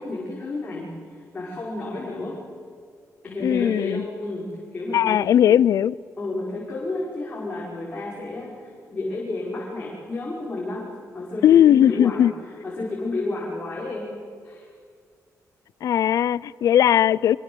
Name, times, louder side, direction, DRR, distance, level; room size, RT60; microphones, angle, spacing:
voice 1, 0.0-2.4 3.2-5.2 6.2-10.9 11.1-12.3 12.6-14.1 14.4-14.7, left 2 dB, 25° left, 5.8 m, -31 dB
voice 2, 3.4-4.0 4.9-6.0 11.4-12.3 15.8-17.4, left 10 dB, 70° left, 0.6 m, -18 dB
25.5 x 24.0 x 8.1 m
cardioid pair, 145°, 6 cm